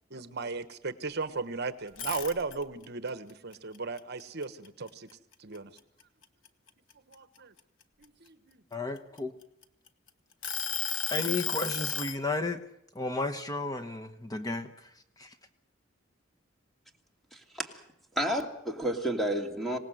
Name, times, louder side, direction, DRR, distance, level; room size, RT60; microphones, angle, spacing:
voice 1, 0.1-5.1 5.4-5.7 7.1-7.5 8.0-8.6, right 4 dB, 55° right, 1.2 m, -36 dB
sound 1, 1.9-2.8 3.3-5.1 5.5-5.8 6.2-8.0 8.7-9.9 10.4-12.2, left 7 dB, 80° left, 1.4 m, -34 dB
voice 2, 8.7-9.3 11.1-12.6 12.9-14.7 15.2-15.3, left 2 dB, 20° left, 1.1 m, -33 dB
voice 3, 17.3-17.8 18.2-19.8, right 1 dB, ahead, 2.7 m, -31 dB
26.0 x 18.5 x 7.9 m
head